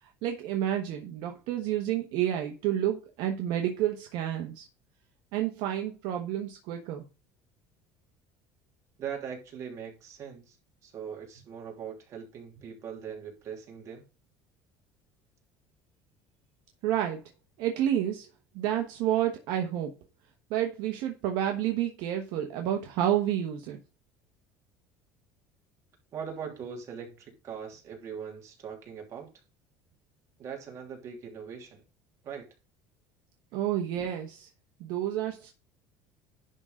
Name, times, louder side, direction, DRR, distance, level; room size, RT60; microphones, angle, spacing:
voice 1, 0.0-4.7 5.3-7.1 16.8-17.2 17.6-18.3 18.5-20.0 20.5-23.8 33.5-34.5 34.8-35.5, right 11 dB, 65° right, 1.2 m, -30 dB
voice 2, 9.0-10.6 10.8-14.0 26.1-29.3 30.4-31.8 32.2-32.5, right 7 dB, 40° right, 3.0 m, -41 dB
11.0 x 3.8 x 5.1 m
cardioid pair, 135°, 8 cm